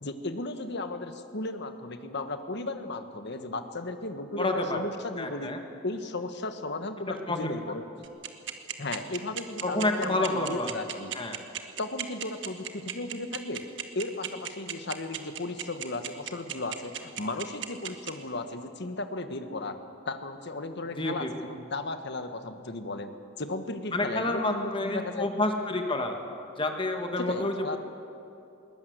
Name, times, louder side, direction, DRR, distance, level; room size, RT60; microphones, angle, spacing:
voice 1, 0.0-7.8 8.8-11.1 11.8-13.6 13.9-19.8 20.0-23.1 23.4-25.3 27.2-27.8, left 2 dB, 55° left, 8 dB, 1.4 m, -35 dB
voice 2, 4.4-4.8 5.2-5.6 7.1-7.5 9.6-10.7 11.1-11.4 21.0-21.3 23.9-26.2 26.6-27.8, left 2 dB, 25° left, 4 dB, 1.6 m, -29 dB
sound 1, 8.0-18.1, right 11 dB, 60° right, 1.5 m, -34 dB
21.0 x 19.5 x 8.1 m, 2.8 s
head